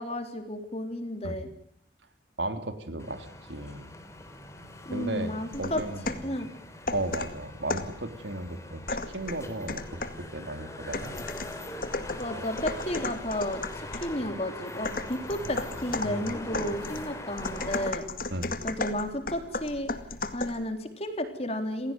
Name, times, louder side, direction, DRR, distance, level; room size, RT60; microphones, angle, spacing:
voice 1, 0.0-1.5 4.9-6.5 12.2-18.1 18.6-19.9 20.3-21.9, left 1 dB, 35° left, 7 dB, 3.5 m, -33 dB
voice 2, 2.4-3.9 4.9-5.3 5.6-6.3 6.9-10.1 10.3-11.2 18.3-18.6, right 2 dB, 70° right, 8 dB, 3.3 m, -35 dB
sound 1, 3.0-17.9, left 1 dB, 15° left, 3.5 m, -41 dB
sound 2, 5.5-6.3 6.9-8.0 8.9-10.3 10.9-14.2 14.8-20.7, left 3 dB, 50° left, 2.1 m, -35 dB
28.0 x 16.5 x 9.5 m, 0.70 s
head